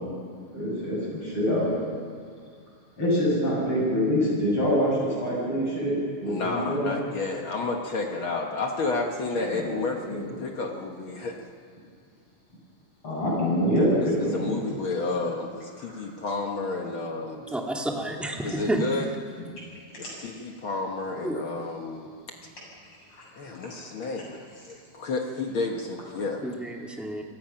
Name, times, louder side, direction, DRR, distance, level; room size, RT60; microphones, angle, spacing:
voice 1, 0.5-1.7 3.0-6.9 9.4-9.7 10.1-10.3 13.0-14.6 15.8-15.9 23.2-23.3 23.7-23.8, equal, 35° left, -4 dB, 8.7 m, -25 dB
voice 2, 6.3-11.3 14.2-17.4 18.4-19.1 20.0-22.1 23.4-24.4 24.7-26.4, left 3 dB, 55° left, 2 dB, 1.5 m, -31 dB
voice 3, 17.5-18.8 21.2-21.4 26.4-27.2, right 1 dB, ahead, 0 dB, 1.0 m, -30 dB
28.5 x 19.5 x 5.8 m, 2.1 s
omnidirectional pair, 3.9 m